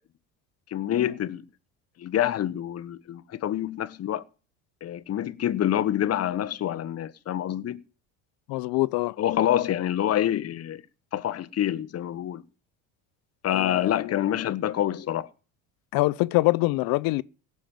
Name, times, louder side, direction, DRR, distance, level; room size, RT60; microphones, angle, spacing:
voice 1, 0.7-1.4 2.0-4.2 4.8-7.8 9.2-10.8 11.1-12.4 13.4-15.3, left 11 dB, 40° left, 1.2 m, -27 dB
voice 2, 8.5-9.2 13.5-14.2 15.9-17.2, left 21 dB, 65° left, 0.7 m, -24 dB
17.0 x 7.2 x 9.2 m
supercardioid pair, 105°, 37 cm